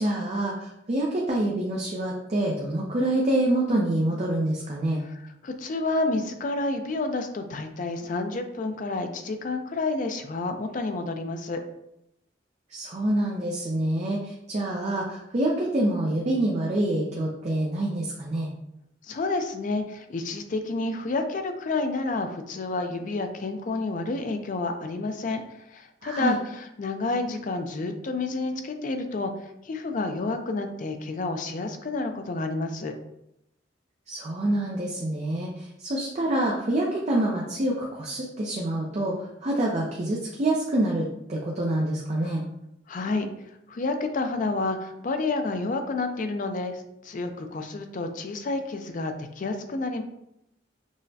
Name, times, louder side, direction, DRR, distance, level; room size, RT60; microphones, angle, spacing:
voice 1, 0.0-5.0 12.7-18.5 26.0-26.4 34.1-39.2 39.4-42.4, right 1 dB, 35° right, -2 dB, 0.5 m, -26 dB
voice 2, 5.1-11.6 19.1-25.4 25.7-29.3 29.6-32.9 42.2-42.3 42.9-43.3 43.7-50.0, left 3 dB, 40° left, 6 dB, 0.4 m, -29 dB
6.1 x 2.1 x 2.7 m, 0.81 s
head